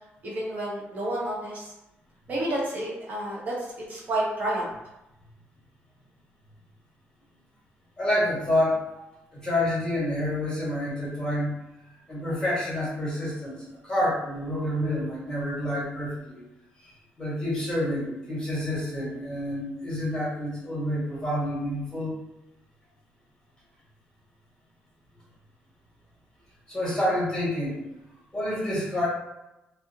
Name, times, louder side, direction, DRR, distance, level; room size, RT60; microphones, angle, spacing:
voice 1, 0.2-1.7 2.3-4.7, right 1 dB, 45° right, -5 dB, 0.9 m, -30 dB
voice 2, 8.0-8.9 9.3-11.5 11.9-16.4 16.8-22.1 26.7-27.8 28.3-29.1, left 1 dB, 15° left, -7 dB, 1.2 m, -28 dB
2.4 x 2.0 x 2.7 m, 0.93 s
cardioid pair, 135°, 4 cm